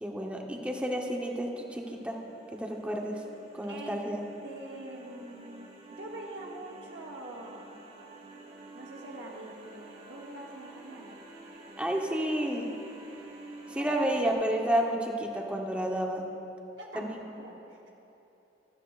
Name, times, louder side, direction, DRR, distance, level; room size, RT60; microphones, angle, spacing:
voice 1, 0.0-2.2 2.5-3.2 3.6-4.2 11.8-12.7 13.7-16.3 16.9-17.2, right 1 dB, 5° right, 0 dB, 0.9 m, -30 dB
sound 1, 1.0-14.3, right 2 dB, 50° right, 3.0 m, -50 dB
voice 2, 3.7-4.0 4.4-5.6 5.9-7.8 8.7-11.2 13.7-14.7 16.8-17.9, right 1 dB, 85° right, -1 dB, 1.1 m, -44 dB
16.0 x 13.5 x 2.4 m, 3.0 s
head